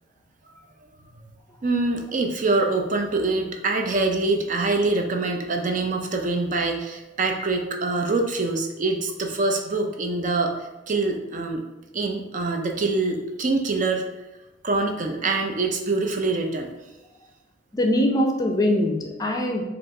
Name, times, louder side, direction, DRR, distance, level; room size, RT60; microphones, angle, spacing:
voice 1, 1.6-10.5 10.9-11.6 11.9-14.0 14.6-16.7, right 3 dB, 40° right, 3 dB, 0.5 m, -24 dB
voice 2, 17.7-19.6, left 1 dB, 20° left, 2 dB, 0.4 m, -22 dB
4.8 x 2.5 x 3.7 m, 1.0 s
head